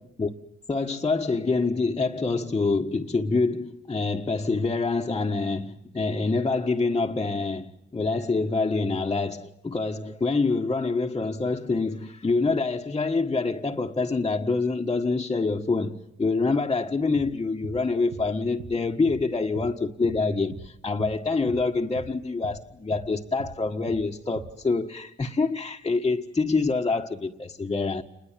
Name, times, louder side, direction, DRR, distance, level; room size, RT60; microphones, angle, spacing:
voice 1, 0.7-28.0, left 3 dB, 25° left, 1.5 m, -26 dB
sound 1, 17.1-17.3 17.6-17.8 18.1-18.3 18.6-18.8 19.1-19.2 19.6-19.7 20.0-20.2 20.5-20.7 21.0-21.2 21.5-21.6 21.9-22.1 22.4-22.6 22.9-23.1 23.4-23.6 23.9-24.0 24.4-24.5, right 5 dB, 85° right, 2.7 m, -40 dB
29.0 x 21.5 x 7.5 m
cardioid pair, 90°, 20 cm